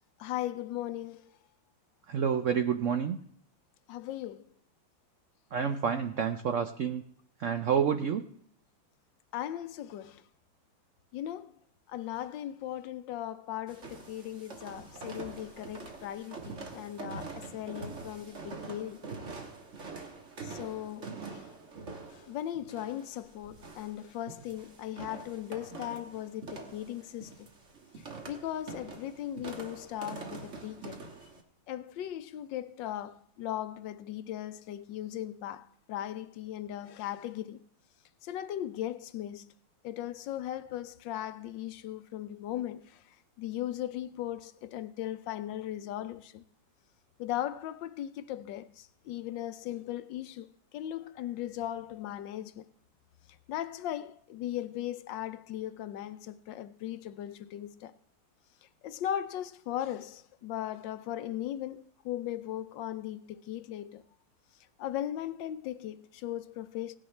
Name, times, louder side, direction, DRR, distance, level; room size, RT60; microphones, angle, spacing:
voice 1, 0.2-1.3 3.9-4.4 9.3-10.2 11.1-11.5 11.9-19.1 20.4-21.5 22.1-27.5 28.3-31.0 31.7-37.6 38.2-39.5 39.8-46.4 47.2-50.5 50.7-52.7 53.5-57.9 58.8-64.0 64.8-67.0, left 12 dB, 75° left, 1.3 m, -38 dB
voice 2, 2.1-3.2 5.5-7.0 7.4-8.2, right 7 dB, 75° right, 0.7 m, -29 dB
sound 1, 13.7-31.4, right 4 dB, 40° right, 1.6 m, -45 dB
17.5 x 10.0 x 3.2 m
omnidirectional pair, 2.1 m